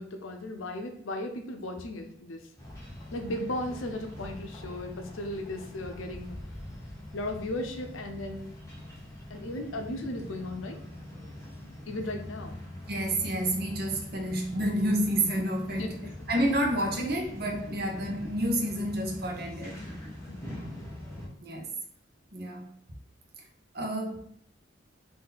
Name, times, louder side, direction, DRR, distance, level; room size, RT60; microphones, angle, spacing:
voice 1, 0.0-2.5 3.1-6.4 7.1-8.5 9.3-10.8 11.9-12.5 15.8-16.3 17.7-17.8 20.2-20.7, left 1 dB, 85° left, 0.7 m, -36 dB
sound 1, 2.6-21.3, left 1 dB, 15° left, 1.0 m, -43 dB
voice 2, 12.9-16.0 16.3-19.8 21.4-21.7 22.3-22.7 23.7-24.2, right 1 dB, 50° right, 0.9 m, -29 dB
4.1 x 2.8 x 3.9 m
head